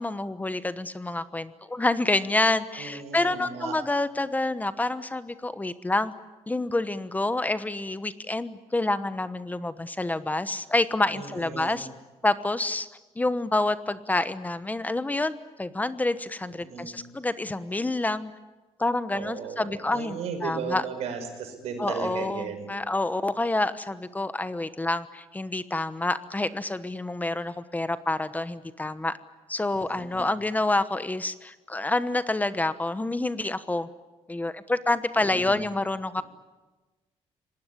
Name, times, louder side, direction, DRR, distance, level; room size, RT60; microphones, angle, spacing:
voice 1, 0.0-6.1 6.5-11.9 12.2-12.9 13.2-18.3 18.8-20.8 21.8-29.1 29.5-33.9 34.3-36.2, left 2 dB, 15° left, 13 dB, 1.1 m, -28 dB
voice 2, 2.8-3.8 11.1-11.8 16.5-17.0 19.1-22.7 29.8-30.3 35.2-35.7, right 6 dB, 80° right, 6 dB, 5.4 m, -36 dB
25.5 x 19.5 x 9.9 m, 1.2 s
cardioid pair, 105°, 11 cm